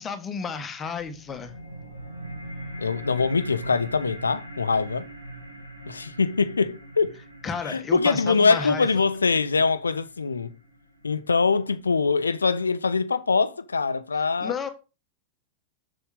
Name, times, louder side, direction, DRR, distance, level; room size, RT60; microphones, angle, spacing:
voice 1, 0.0-1.5 7.4-8.9 14.4-14.7, left 5 dB, 20° left, 1.6 m, -32 dB
sound 1, 1.0-12.0, right 1 dB, 90° right, 1.9 m, -41 dB
voice 2, 2.8-5.1 5.9-7.2 7.7-10.5 11.0-14.5, left 4 dB, 75° left, 0.7 m, -23 dB
7.1 x 6.7 x 5.0 m
figure-of-eight pair, 90°, 0 cm